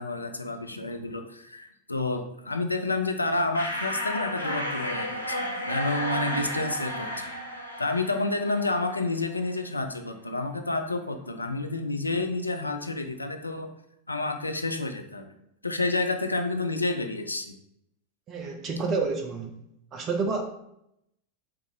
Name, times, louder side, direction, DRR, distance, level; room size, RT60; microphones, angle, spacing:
voice 1, 0.0-7.1 7.8-13.7 14.1-15.4 15.6-17.5, left 2 dB, 80° left, 6 dB, 0.3 m, -29 dB
sound 1, 3.5-9.1, equal, 90° right, 0.6 m, -32 dB
voice 2, 18.3-19.6 19.9-20.4, right 4 dB, 30° right, 4 dB, 0.4 m, -29 dB
4.5 x 2.4 x 2.7 m, 0.79 s
figure-of-eight pair, 90°, 0 cm